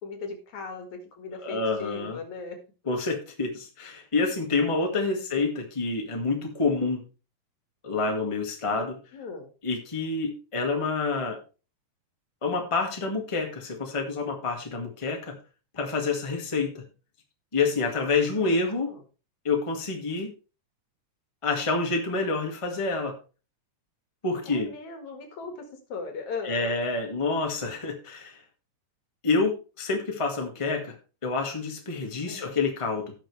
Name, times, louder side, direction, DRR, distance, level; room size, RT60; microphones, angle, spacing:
voice 1, 0.0-2.6 5.1-5.2 9.1-9.5 18.3-19.0 24.4-25.5 25.9-26.7 32.2-32.6, left 4 dB, 75° left, 5 dB, 3.3 m, -38 dB
voice 2, 1.4-2.2 2.8-7.0 7.8-9.0 9.6-11.4 12.4-15.4 15.7-16.8 17.5-18.9 19.4-20.3 21.4-23.2 24.2-24.7 26.4-28.4 29.2-31.0 31.2-33.1, left 3 dB, 15° left, 2 dB, 1.6 m, -28 dB
17.5 x 6.0 x 3.3 m, 0.33 s
omnidirectional pair, 3.3 m